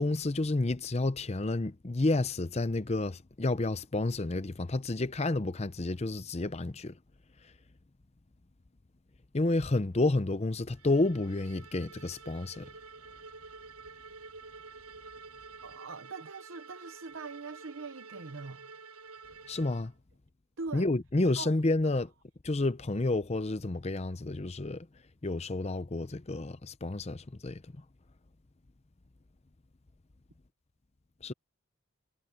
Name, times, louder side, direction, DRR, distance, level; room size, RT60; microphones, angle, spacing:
voice 1, 0.0-7.0 9.3-12.7 19.5-19.9 20.7-22.1 22.4-24.9 25.2-27.6 31.2-31.3, left 2 dB, 30° left, 0.6 m, -30 dB
Bowed string instrument, 10.8-19.9, right 4 dB, 80° right, 7.7 m, -50 dB
voice 2, 15.6-18.7 20.6-20.9 21.2-21.6, right 4 dB, 55° right, 0.8 m, -42 dB
head